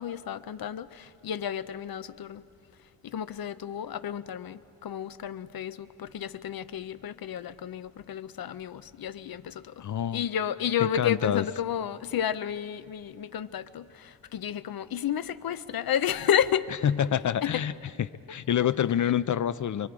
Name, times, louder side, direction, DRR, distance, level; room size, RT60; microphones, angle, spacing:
voice 1, 0.0-2.4 3.0-9.9 10.1-16.7 17.4-17.6, left 9 dB, 90° left, 0.7 m, -31 dB
voice 2, 9.8-10.2 10.8-11.5 16.8-17.7 18.0-19.9, left 9 dB, 60° left, 0.5 m, -27 dB
29.0 x 23.0 x 4.9 m
wide cardioid pair, 180°, 35 cm